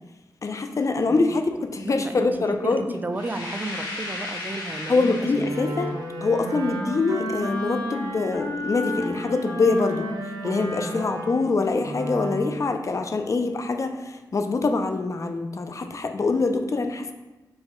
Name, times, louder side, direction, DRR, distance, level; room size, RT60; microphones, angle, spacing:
voice 1, 0.4-2.9 4.9-5.9 6.2-10.1 10.4-17.1, left 3 dB, 45° left, 6 dB, 0.5 m, -24 dB
voice 2, 1.8-2.3 2.6-5.1 5.6-5.8 11.0-11.1, right 2 dB, 25° right, 7 dB, 0.4 m, -33 dB
sound 1, 3.1-5.9, left 2 dB, 75° left, 1.2 m, -35 dB
Wind instrument woodwind instrument, 5.3-12.7, equal, 75° right, 1.0 m, -32 dB
5.3 x 2.3 x 4.2 m, 1.1 s
cardioid pair, 70°, 7 cm